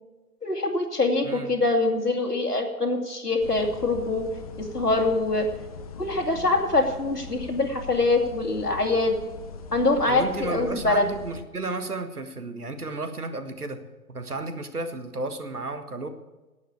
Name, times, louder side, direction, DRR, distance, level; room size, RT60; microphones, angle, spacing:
voice 1, 0.4-4.3 4.6-5.5 6.0-9.2 9.7-11.1, left 2 dB, 90° left, 3 dB, 2.7 m, -24 dB
sound 1, 3.4-11.4, left 5 dB, 25° left, 0.8 m, -41 dB
voice 2, 10.1-13.8 14.1-16.1, right 2 dB, 75° right, 9 dB, 1.7 m, -33 dB
11.5 x 8.8 x 8.3 m, 1.1 s
figure-of-eight pair, 130°, 46 cm